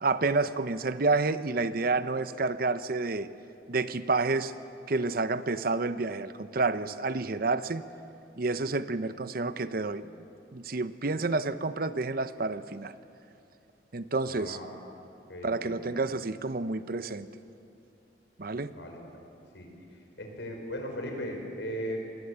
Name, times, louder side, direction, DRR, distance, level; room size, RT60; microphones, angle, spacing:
voice 1, 0.0-3.3 3.7-4.5 4.9-7.8 8.4-10.1 10.5-12.9 13.9-14.6 15.4-17.3 18.4-18.7, right 3 dB, 55° right, 13 dB, 0.8 m, -29 dB
voice 2, 14.2-14.7 15.3-16.0 18.5-19.1 19.5-19.7 20.2-22.0, equal, 75° left, 2 dB, 5.4 m, -38 dB
27.0 x 20.0 x 8.2 m, 2.6 s
head